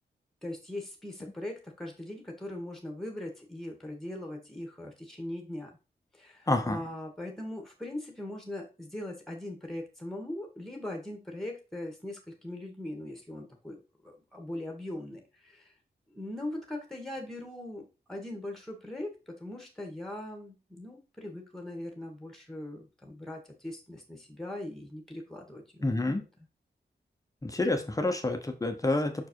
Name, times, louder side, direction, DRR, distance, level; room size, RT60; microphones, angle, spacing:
voice 1, 0.4-5.7 6.1-15.7 16.1-25.9, left 1 dB, ahead, 3 dB, 1.8 m, -40 dB
voice 2, 6.5-6.8 25.8-26.2 27.4-29.3, left 2 dB, 20° left, 5 dB, 0.9 m, -28 dB
6.2 x 4.7 x 4.6 m, 0.29 s
wide cardioid pair, 175°, 19 cm